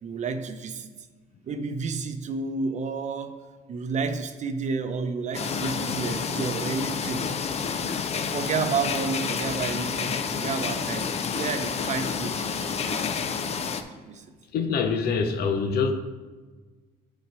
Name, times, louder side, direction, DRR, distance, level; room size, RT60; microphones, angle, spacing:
voice 1, 0.0-0.9 1.5-3.4 3.7-7.3 8.3-13.1 14.0-14.2, right 5 dB, 45° right, 8 dB, 0.7 m, -31 dB
sound 1, 5.3-13.8, left 6 dB, 40° left, 0.6 m, -29 dB
voice 2, 14.5-15.9, left 5 dB, 65° left, 7 dB, 0.8 m, -25 dB
8.1 x 4.3 x 4.7 m, 1.4 s
cardioid pair, 110°, 17 cm